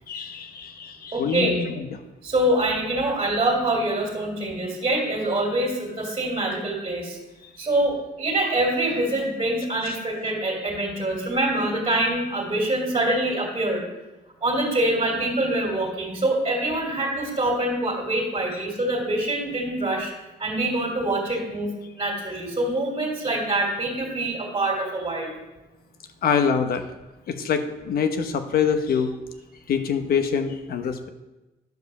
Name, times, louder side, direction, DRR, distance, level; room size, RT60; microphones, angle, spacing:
voice 1, 0.1-2.0 26.2-26.8 27.3-29.1 29.7-31.1, left 6 dB, 65° left, 7 dB, 1.1 m, -25 dB
voice 2, 1.1-1.6 2.2-7.2 7.6-13.8 14.4-20.1 20.4-25.3, right 1 dB, 30° right, -2 dB, 2.6 m, -25 dB
11.0 x 5.0 x 6.8 m, 1.0 s
cardioid pair, 115°, 17 cm